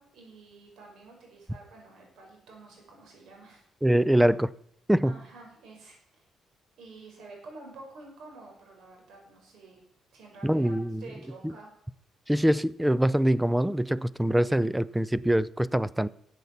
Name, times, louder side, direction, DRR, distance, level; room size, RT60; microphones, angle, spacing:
voice 1, 0.0-3.6 5.0-6.2 6.8-9.8 10.1-11.7, right 3 dB, 75° right, 5.7 m, -49 dB
voice 2, 3.8-4.5 4.9-5.2 10.4-11.0 12.3-16.1, right 1 dB, 5° right, 0.5 m, -24 dB
13.5 x 8.1 x 7.2 m
cardioid pair, 90°, 0 cm